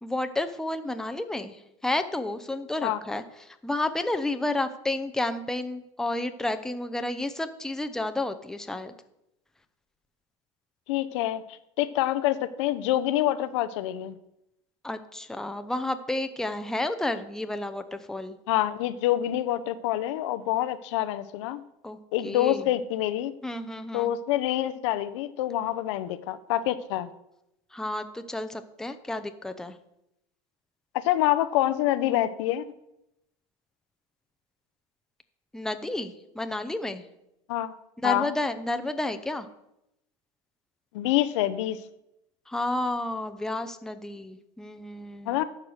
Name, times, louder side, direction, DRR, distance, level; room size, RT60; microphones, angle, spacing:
voice 1, 0.0-8.9 14.8-18.4 21.8-22.7 23.4-24.1 27.7-29.8 35.5-37.0 38.0-39.5 42.5-45.4, left 2 dB, 5° left, 8 dB, 0.7 m, -31 dB
voice 2, 10.9-11.4 11.8-14.2 18.5-21.6 22.1-23.3 23.9-27.1 30.9-32.6 37.5-37.7 38.0-38.3 40.9-41.8 45.3-45.4, left 13 dB, 75° left, 13 dB, 0.7 m, -26 dB
11.5 x 4.8 x 6.4 m, 0.85 s
supercardioid pair, 110°, 15 cm